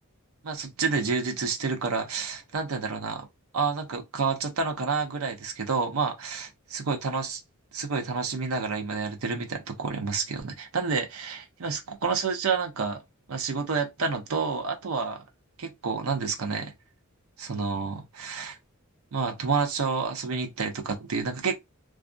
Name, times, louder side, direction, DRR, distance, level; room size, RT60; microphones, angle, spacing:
voice 1, 0.4-3.3 3.5-7.4 7.7-13.0 13.3-15.2 15.6-16.7 17.4-18.6 19.1-21.5, right 4 dB, 80° right, 0.6 m, -29 dB
2.4 x 2.1 x 2.5 m
head